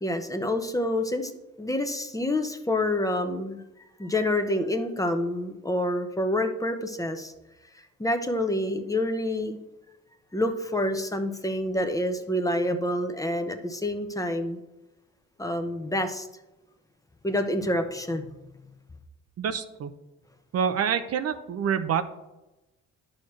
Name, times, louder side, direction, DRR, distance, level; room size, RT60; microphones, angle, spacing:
voice 1, 0.0-1.3 1.6-3.6 4.0-7.3 8.0-9.6 10.3-14.6 15.4-16.3 17.2-18.3, left 1 dB, 10° left, 6 dB, 0.9 m, -27 dB
voice 2, 19.4-19.9 20.5-22.1, right 7 dB, 55° right, 9 dB, 0.6 m, -27 dB
10.5 x 6.4 x 3.2 m, 0.99 s
cardioid pair, 90°, 30 cm